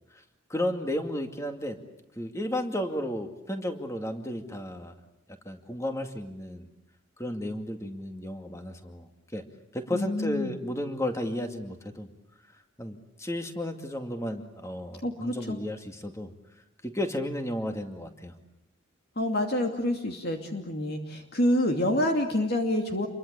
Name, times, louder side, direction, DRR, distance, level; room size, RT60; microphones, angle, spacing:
voice 1, 0.5-1.8 2.2-4.9 5.5-6.7 7.2-9.4 9.7-12.1 12.8-16.3 16.8-18.3, left 1 dB, 15° left, 5 dB, 2.3 m, -33 dB
voice 2, 9.9-10.6 15.0-15.6 19.2-23.1, left 1 dB, 50° left, 3 dB, 2.7 m, -27 dB
28.5 x 23.5 x 8.3 m, 0.85 s
head